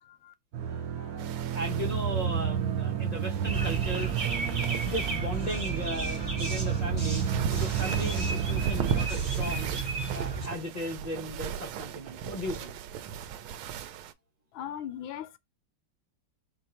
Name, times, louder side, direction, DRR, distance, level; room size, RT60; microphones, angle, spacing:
voice 1, 0.0-0.3 14.5-15.4, left 10 dB, 75° left, 1.3 m, -39 dB
sound 1, 0.5-9.1, right 9 dB, 65° right, 0.9 m, -31 dB
voice 2, 1.0-4.1 4.5-9.7 10.1-12.7, left 1 dB, 55° left, 0.4 m, -37 dB
sound 2, 1.2-14.1, right 8 dB, 85° right, 1.4 m, -37 dB
sound 3, 3.5-10.5, right 4 dB, 25° right, 1.1 m, -33 dB
4.5 x 2.6 x 4.3 m
omnidirectional pair, 2.2 m